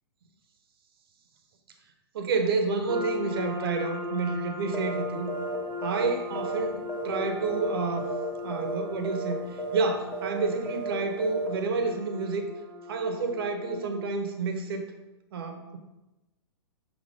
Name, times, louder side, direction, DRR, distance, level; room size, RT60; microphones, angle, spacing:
voice 1, 2.1-5.3 5.8-8.1 8.4-12.5 12.9-14.9 15.3-15.8, right 4 dB, 60° right, 6 dB, 1.1 m, -29 dB
sound 1, 2.9-14.1, left 4 dB, 25° right, 0.8 m, -39 dB
sound 2, 4.7-5.0 5.3-5.6 5.8-7.2 7.4-7.7 8.0-8.3 8.5-8.8 9.0-9.3 9.6-9.9 10.1-10.4 10.7-10.9 11.2-11.5, right 3 dB, 10° left, 1.4 m, -33 dB
6.6 x 4.4 x 4.9 m, 1.0 s
hypercardioid pair, 115°, 14 cm